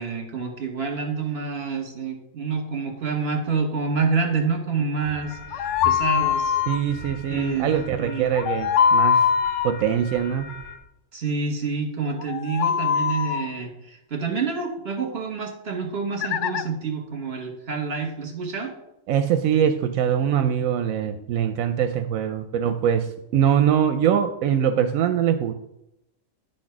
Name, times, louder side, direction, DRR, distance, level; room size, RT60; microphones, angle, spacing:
voice 1, 0.0-6.6 7.3-8.3 11.1-18.7, right 4 dB, 50° right, 2 dB, 1.9 m, -28 dB
sound 1, 5.0-10.8, left 2 dB, 35° left, 1.5 m, -40 dB
sound 2, 5.5-6.8 8.3-9.7 12.2-13.5 16.2-16.6, left 7 dB, 70° left, 0.8 m, -22 dB
voice 2, 6.7-9.3 9.6-10.6 19.1-25.5, right 9 dB, 85° right, 8 dB, 1.0 m, -23 dB
10.5 x 4.3 x 5.9 m, 0.84 s
omnidirectional pair, 1.4 m